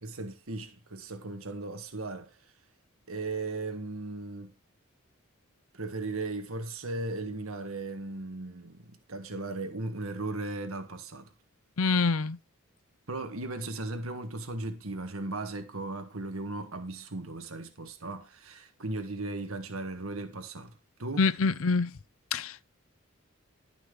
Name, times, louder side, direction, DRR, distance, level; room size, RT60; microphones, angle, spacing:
voice 1, 0.0-2.4 3.1-4.5 5.7-11.3 13.1-21.3, right 2 dB, 80° right, 1.7 m, -37 dB
voice 2, 11.8-12.4 21.2-21.9 22.3-22.6, left 4 dB, 80° left, 0.6 m, -25 dB
11.5 x 6.0 x 4.9 m
head